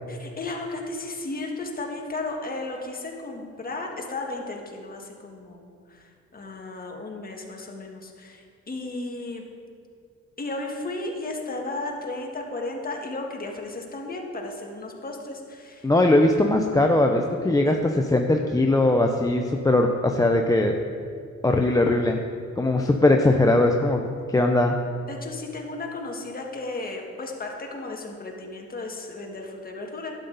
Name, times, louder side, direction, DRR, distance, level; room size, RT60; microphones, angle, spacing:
voice 1, 0.1-9.4 10.4-15.9 17.4-17.8 25.1-30.1, left 2 dB, 30° left, 1 dB, 1.7 m, -34 dB
voice 2, 15.8-20.7 21.4-22.2 22.6-24.7, left 2 dB, 10° left, 3 dB, 0.6 m, -20 dB
11.5 x 8.4 x 4.0 m, 2.3 s
cardioid pair, 90°, 30 cm